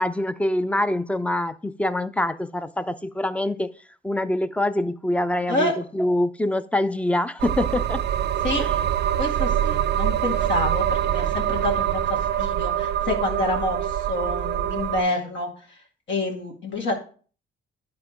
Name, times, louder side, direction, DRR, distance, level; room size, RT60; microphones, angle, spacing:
voice 1, 0.0-3.7 4.0-8.0 8.6-8.7, left 1 dB, 5° left, 0.4 m, -25 dB
sound 1, 7.4-15.0, right 10 dB, 60° right, 0.4 m, -24 dB
voice 2, 9.2-15.8 16.1-16.9, left 1 dB, 65° left, 2.1 m, -28 dB
10.5 x 4.3 x 2.9 m
cardioid pair, 90°, 20 cm